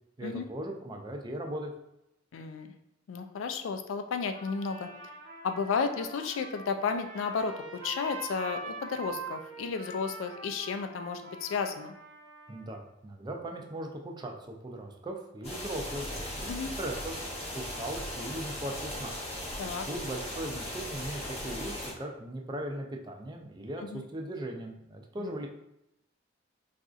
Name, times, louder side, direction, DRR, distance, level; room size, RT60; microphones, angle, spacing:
voice 1, 0.2-1.7 12.5-17.2 17.5-19.2 19.8-25.5, right 1 dB, 20° right, 2 dB, 0.4 m, -38 dB
voice 2, 2.3-2.7 3.1-4.9 5.4-7.5 7.8-11.9 16.5-16.7 19.6-19.9 23.8-24.0 25.2-25.3, left 5 dB, 85° left, 7 dB, 0.4 m, -33 dB
Trumpet, 4.3-12.8, right 3 dB, 85° right, 1.0 m, -44 dB
sound 1, 15.4-21.9, left 1 dB, 30° left, 0.9 m, -38 dB
4.0 x 2.5 x 2.4 m, 0.85 s
head